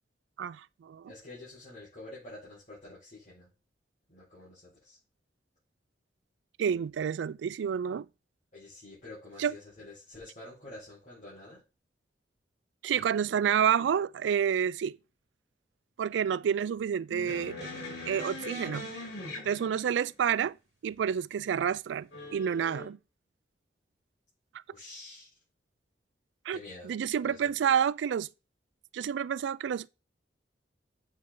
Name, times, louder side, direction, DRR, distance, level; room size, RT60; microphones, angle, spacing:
voice 1, 0.4-1.1 6.6-8.1 9.4-9.5 12.8-15.0 16.0-17.6 18.1-18.9 19.4-20.6 20.8-23.0 26.5-26.6 26.8-28.3 28.9-29.9, right 8 dB, 85° right, 0.3 m, -29 dB
voice 2, 1.1-3.5 4.1-5.0 8.5-11.6 24.7-25.3 26.5-26.9 27.2-27.5, left 2 dB, 45° left, 4.8 m, -48 dB
sound 1, 17.1-20.1 22.1-22.9, left 2 dB, 70° left, 3.9 m, -41 dB
8.1 x 5.3 x 3.8 m
head